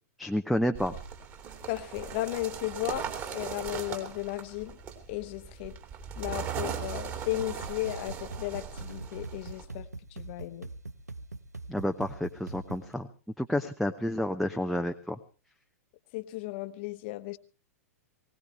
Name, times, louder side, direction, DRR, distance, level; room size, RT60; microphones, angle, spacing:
voice 1, 0.2-0.9 11.7-13.1 13.4-15.2, equal, ahead, 4 dB, 0.7 m, -30 dB
sound 1, 0.7-9.6, right 7 dB, 30° right, 2.8 m, -39 dB
voice 2, 1.7-3.1 3.3-4.8 5.1-5.8 6.2-10.7 16.1-17.4, left 17 dB, 45° left, 13 dB, 1.0 m, -35 dB
sound 2, 7.4-12.9, right 2 dB, 85° right, 0.8 m, -43 dB
20.0 x 18.0 x 3.3 m, 0.36 s
figure-of-eight pair, 100°, 9 cm